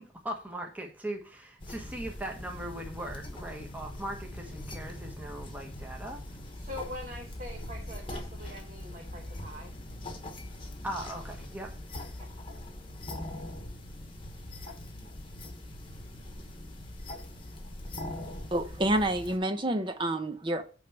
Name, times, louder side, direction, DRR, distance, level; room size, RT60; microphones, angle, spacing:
voice 1, 0.0-6.2 10.8-11.7, right 1 dB, 10° right, 1.1 m, -39 dB
sound 1, 1.6-19.4, left 1 dB, 25° left, 1.1 m, -42 dB
voice 2, 6.6-9.7 12.2-12.3, left 1 dB, 40° right, 1.1 m, -43 dB
voice 3, 18.5-20.6, right 1 dB, 25° right, 0.7 m, -28 dB
8.9 x 3.4 x 5.8 m
head